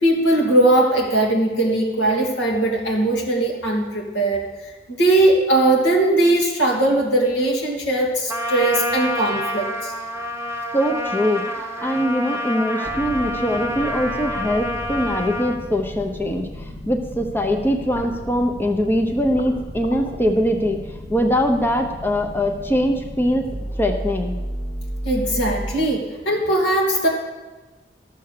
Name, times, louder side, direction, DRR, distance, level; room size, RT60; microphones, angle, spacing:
voice 1, 0.0-4.4 4.9-9.9 25.0-27.1, right 1 dB, 85° left, -1 dB, 2.7 m, -19 dB
Trumpet, 8.3-15.6, left 1 dB, 15° right, 1.1 m, -28 dB
voice 2, 10.7-20.8 21.1-23.5 23.8-24.3, equal, 10° left, 4 dB, 0.7 m, -22 dB
sound 1, 12.8-25.7, equal, 45° left, 1.8 m, -33 dB
13.0 x 7.0 x 6.7 m, 1.2 s
head